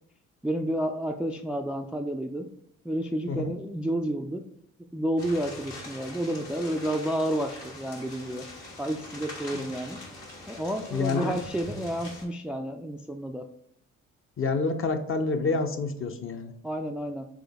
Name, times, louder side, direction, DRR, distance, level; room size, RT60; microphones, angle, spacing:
voice 1, 0.4-2.5 2.8-4.4 4.9-8.5 8.8-10.0 10.5-13.5 16.6-17.3, right 1 dB, 5° right, 4 dB, 0.3 m, -30 dB
sound 1, 5.2-12.2, left 2 dB, 85° left, 1.6 m, -43 dB
voice 2, 10.9-11.4 14.4-16.5, left 3 dB, 35° left, 7 dB, 0.6 m, -28 dB
3.7 x 3.4 x 3.4 m, 0.69 s
hypercardioid pair, 55°, 37 cm